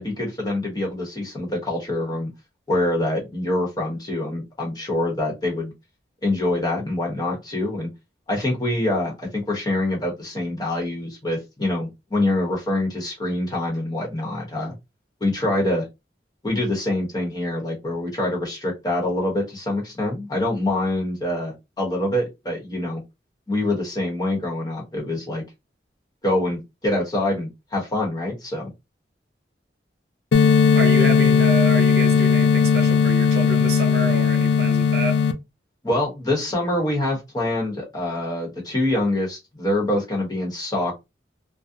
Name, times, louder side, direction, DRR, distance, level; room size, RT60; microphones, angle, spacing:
voice 1, 0.0-2.3 2.7-5.7 6.2-7.9 8.3-14.7 15.2-15.9 16.4-23.0 23.5-25.4 26.2-28.7 35.8-41.0, left 1 dB, 20° left, 0.9 m, -25 dB
sound 1, 30.3-35.3, left 6 dB, 70° left, 0.3 m, -17 dB
voice 2, 30.7-35.2, right 2 dB, 60° right, 0.6 m, -28 dB
2.4 x 2.0 x 2.7 m
head